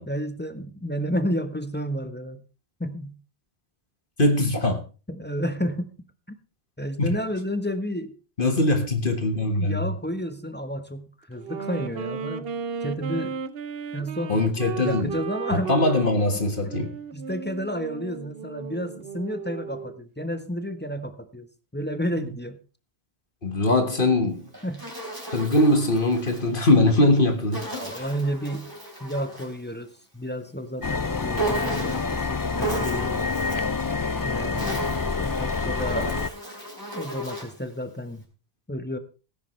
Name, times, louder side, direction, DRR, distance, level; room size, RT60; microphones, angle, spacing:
voice 1, 0.0-2.4 2.8-3.1 5.1-5.9 6.8-8.1 9.3-12.5 12.8-13.4 13.9-14.4 14.8-15.7 17.1-21.5 21.7-22.6 24.6-24.8 27.7-28.7 29.0-33.3 34.2-34.9 35.2-36.1 36.9-38.3 38.7-39.0, equal, 10° left, 1.1 m, -31 dB
voice 2, 4.2-4.8 7.0-7.1 8.4-9.9 14.3-15.1 15.5-16.9 23.4-24.5 25.3-27.7, left 2 dB, 55° left, 1.9 m, -21 dB
Wind instrument woodwind instrument, 11.3-20.0, right 6 dB, 70° right, 1.0 m, -35 dB
Insect, 24.3-26.5 27.5-29.6 31.4-32.2 32.6-33.7 34.4-37.6, right 2 dB, 20° right, 3.9 m, -35 dB
sound 1, 30.8-36.3, left 4 dB, 30° left, 0.4 m, -27 dB
17.5 x 10.0 x 3.2 m
omnidirectional pair, 1.0 m